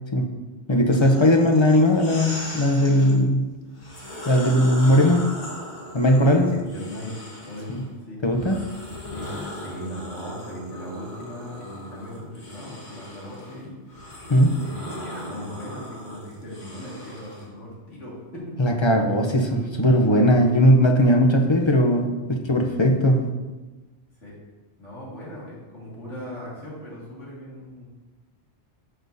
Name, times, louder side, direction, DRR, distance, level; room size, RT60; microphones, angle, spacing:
voice 1, 0.7-3.4 4.3-5.2 5.9-6.5 7.7-7.8 8.2-8.6 14.3-14.5 18.6-23.3, equal, 30° left, 3 dB, 0.6 m, -18 dB
sound 1, 0.9-3.2 3.7-7.8 8.3-17.5, left 1 dB, 60° left, 2.0 m, -39 dB
voice 2, 4.8-5.3 6.4-8.2 9.1-13.7 14.6-19.2 24.2-24.4 24.8-27.9, equal, 80° left, -6 dB, 2.5 m, -38 dB
11.5 x 6.2 x 2.7 m, 1.2 s
omnidirectional pair, 1.2 m